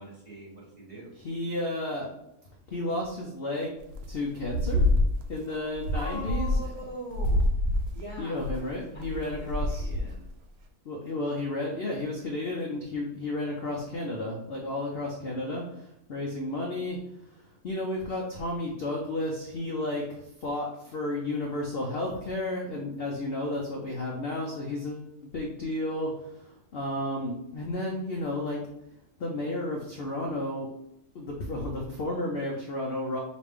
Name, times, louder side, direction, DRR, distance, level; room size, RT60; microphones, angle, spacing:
voice 1, 0.0-1.1 5.5-8.6 8.9-10.3, right 1 dB, 25° right, -5 dB, 1.0 m, -43 dB
voice 2, 1.2-2.1 2.7-3.8 4.1-4.9 5.3-6.5 8.2-9.9 10.8-17.0 17.6-28.6 29.2-30.7 31.1-33.2, left 1 dB, 60° left, -1 dB, 0.6 m, -32 dB
sound 1, 3.9-4.2 4.4-5.4 5.7-6.9 7.1-10.3, left 1 dB, 85° right, 0.5 m, -27 dB
5.0 x 2.5 x 3.5 m, 0.84 s
omnidirectional pair, 1.7 m